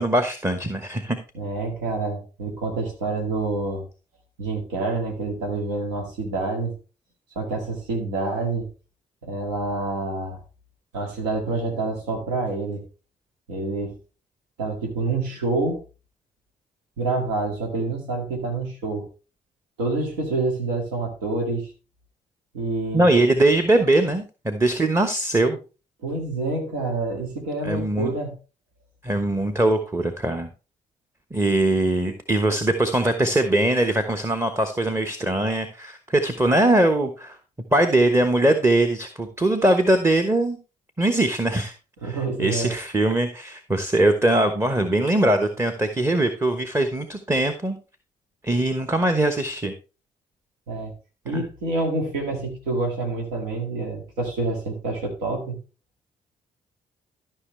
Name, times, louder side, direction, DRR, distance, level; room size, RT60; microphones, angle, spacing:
voice 1, 0.0-1.2 22.9-25.6 27.6-28.1 29.0-30.5 31.3-37.4 37.7-40.6 41.0-41.7 42.0-47.8 48.4-49.7 51.3-51.4, right 1 dB, 15° right, 8 dB, 1.1 m, -21 dB
voice 2, 1.3-3.9 4.4-6.7 7.4-8.6 9.2-10.4 10.9-12.8 13.5-14.0 14.6-15.8 17.0-19.1 19.8-21.7 22.5-23.1 26.0-28.4 42.0-42.7 50.7-50.9 51.3-55.6, right 3 dB, 80° right, 1 dB, 2.0 m, -27 dB
13.0 x 5.6 x 3.2 m, 0.32 s
hypercardioid pair, 45°, 20 cm